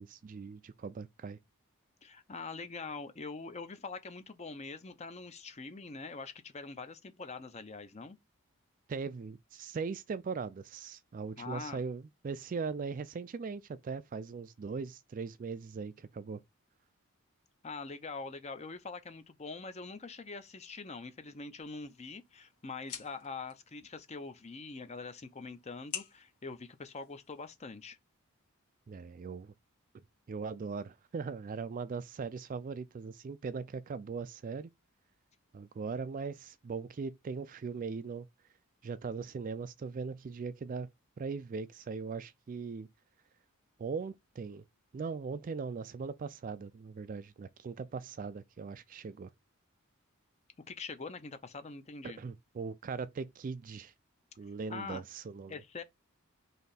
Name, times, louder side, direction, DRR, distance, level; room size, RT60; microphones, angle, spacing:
voice 1, 0.0-1.4 8.9-16.4 28.9-29.5 30.3-34.7 35.5-38.3 38.8-40.9 41.2-42.9 43.8-44.6 44.9-49.3 52.0-53.9 54.4-55.6, right 5 dB, 40° right, 0.3 m, -40 dB
voice 2, 2.0-8.2 11.4-11.8 17.6-28.0 50.7-52.2 54.7-55.0 55.5-55.8, left 4 dB, 30° left, 0.5 m, -44 dB
sound 1, 21.6-27.6, left 7 dB, 90° left, 1.5 m, -50 dB
3.3 x 2.8 x 4.0 m
head